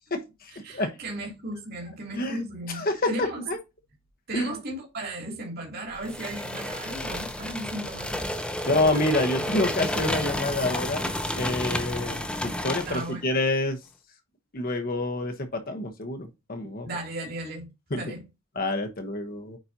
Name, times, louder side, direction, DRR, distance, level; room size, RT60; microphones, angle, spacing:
voice 1, 0.1-0.9 2.1-2.4 2.7-3.6 4.3-4.6 8.7-11.1 11.3-13.8 14.5-16.9 17.9-18.1 18.5-19.6, left 2 dB, 45° left, 1.0 m, -28 dB
voice 2, 0.6-3.5 4.3-8.2 8.6-8.7 12.9-13.4 16.8-17.7 17.9-18.3, right 1 dB, 45° right, 2.6 m, -36 dB
sound 1, 6.0-13.1, left 1 dB, 5° left, 0.6 m, -31 dB
8.9 x 4.3 x 2.7 m
head